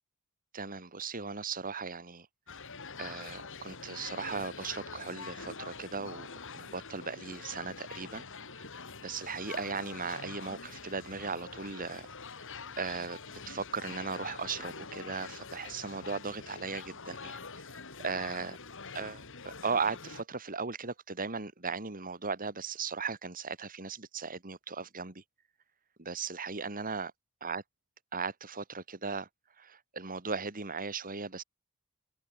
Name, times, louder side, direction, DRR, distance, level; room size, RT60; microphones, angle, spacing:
voice 1, 0.5-2.3 3.0-6.3 6.5-8.3 8.6-8.7 9.0-12.1 12.8-13.2 13.5-17.4 18.0-18.6 18.9-25.2 26.0-27.1 27.4-27.6 28.1-29.3 29.6-31.4, right 5 dB, 40° right, 2.5 m, -37 dB
sound 1, 2.5-20.2, left 5 dB, 60° left, 5.1 m, -45 dB
head